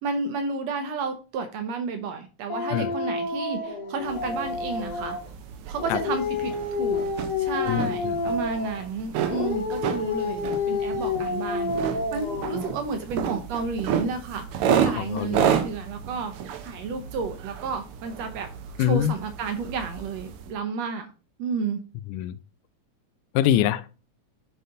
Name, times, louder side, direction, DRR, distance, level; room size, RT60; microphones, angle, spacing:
voice 1, 0.0-5.2 5.7-6.5 6.8-7.1 7.4-16.3 16.6-18.5 18.8-21.1 21.4-21.8, right 4 dB, 70° right, 1.7 m, -31 dB
Dog, 2.5-5.3 5.7-8.8 9.3-12.8, left 4 dB, 50° left, 2.2 m, -29 dB
sound 1, 4.0-20.5, right 8 dB, 85° right, 1.2 m, -31 dB
voice 2, 7.7-8.2 14.7-15.5 18.8-19.1 22.1-22.3 23.4-23.9, left 11 dB, 85° left, 2.0 m, -24 dB
9.2 x 4.0 x 3.8 m
omnidirectional pair, 3.5 m